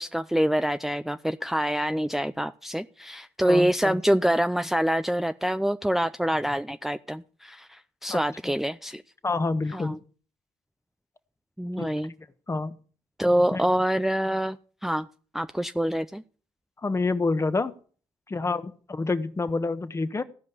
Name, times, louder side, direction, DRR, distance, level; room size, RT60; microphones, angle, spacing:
voice 1, 0.0-9.0 9.7-10.0 11.6-12.1 13.2-14.6 14.8-15.1 15.3-16.2, equal, 5° right, 10 dB, 0.6 m, -26 dB
voice 2, 3.4-4.0 8.1-8.5 9.2-10.0 11.8-11.9 12.5-12.8 13.5-13.6 16.8-17.7 18.3-20.2, left 3 dB, 25° left, 12 dB, 1.3 m, -28 dB
15.5 x 5.3 x 8.3 m, 0.42 s
supercardioid pair, 65°, 11 cm